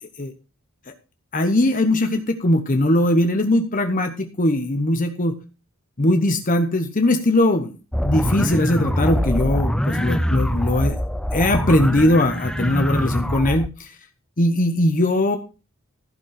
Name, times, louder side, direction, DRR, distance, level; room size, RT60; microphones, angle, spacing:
voice 1, 1.3-5.4 6.0-11.0 11.3-14.0 14.4-15.4, left 1 dB, 40° left, 6 dB, 1.0 m, -20 dB
sound 1, 7.9-13.7, equal, 5° left, 0.6 m, -23 dB
15.0 x 5.3 x 6.4 m, 0.33 s
head